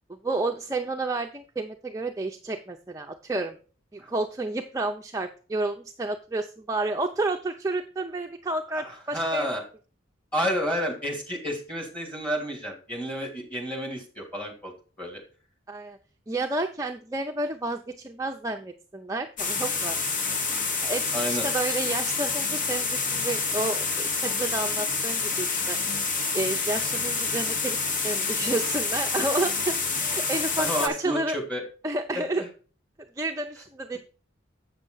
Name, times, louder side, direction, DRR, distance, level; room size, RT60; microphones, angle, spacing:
voice 1, 0.1-3.6 3.9-9.5 15.7-16.0 16.3-20.0 20.8-25.8 26.3-27.8 28.0-31.4 31.8-32.4 33.2-34.0, right 2 dB, 15° right, 3 dB, 0.6 m, -30 dB
voice 2, 8.7-9.6 10.3-14.7 15.0-15.2 20.4-20.5 21.1-21.5 30.6-31.6 32.1-32.5, equal, 5° left, 0 dB, 3.0 m, -30 dB
sound 1, 19.4-30.9, left 4 dB, 45° left, 1.2 m, -28 dB
8.3 x 6.6 x 3.9 m, 0.37 s
head